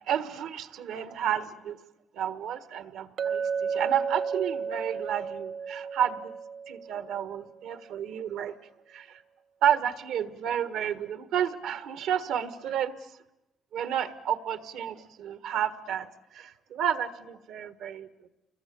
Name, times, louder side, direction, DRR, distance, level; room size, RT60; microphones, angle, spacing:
voice 1, 0.1-1.8 2.1-6.3 6.7-8.5 8.9-9.2 9.6-12.9 13.7-18.1, right 9 dB, 85° right, 12 dB, 1.5 m, -31 dB
Chink clink, 3.2-7.3, right 6 dB, 65° right, 1.2 m, -33 dB
29.5 x 23.0 x 8.7 m, 0.93 s
cardioid pair, 90°, 0 cm